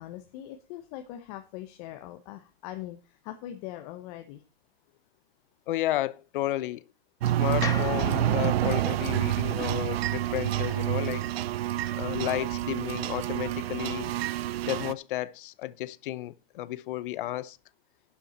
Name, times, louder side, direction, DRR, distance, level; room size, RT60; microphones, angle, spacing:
voice 1, 0.0-4.4 12.2-12.3, left 13 dB, 40° left, 1.0 m, -41 dB
voice 2, 5.7-6.8 7.4-11.2 12.0-14.1 14.6-17.6, left 15 dB, 60° left, 0.7 m, -32 dB
sound 1, 7.2-14.9, right 13 dB, 90° right, 0.6 m, -28 dB
sound 2, 7.6-11.8, left 9 dB, 10° left, 0.4 m, -42 dB
11.5 x 7.1 x 4.3 m
supercardioid pair, 145°, 29 cm